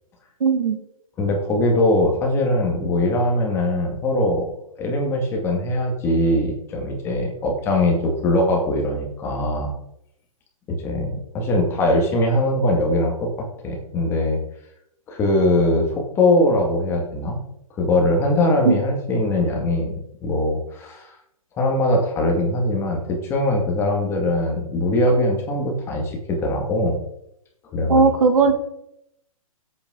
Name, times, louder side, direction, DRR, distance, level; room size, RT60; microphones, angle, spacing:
voice 1, 0.4-0.8 18.6-18.7 27.9-28.5, right 5 dB, 70° right, 7 dB, 2.2 m, -17 dB
voice 2, 1.2-4.5 4.8-9.7 10.8-14.4 15.1-17.4 17.8-21.1 21.6-27.0 27.7-28.0, left 1 dB, 15° left, 1 dB, 2.1 m, -21 dB
16.5 x 8.5 x 3.8 m, 0.77 s
hypercardioid pair, 165°, 18 cm